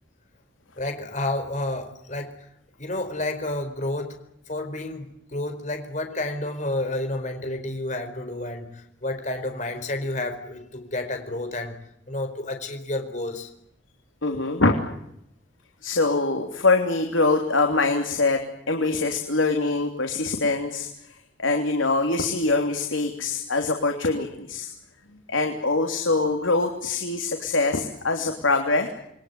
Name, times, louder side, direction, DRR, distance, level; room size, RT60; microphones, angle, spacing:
voice 1, 0.8-2.5 2.8-4.2 4.5-11.8 12.1-13.5, left 2 dB, 40° left, 6 dB, 4.7 m, -30 dB
voice 2, 14.2-14.8 15.8-18.4 18.7-20.9 21.4-24.7 25.3-28.9, left 3 dB, 90° left, 3 dB, 3.3 m, -23 dB
28.0 x 21.5 x 9.7 m, 0.76 s
head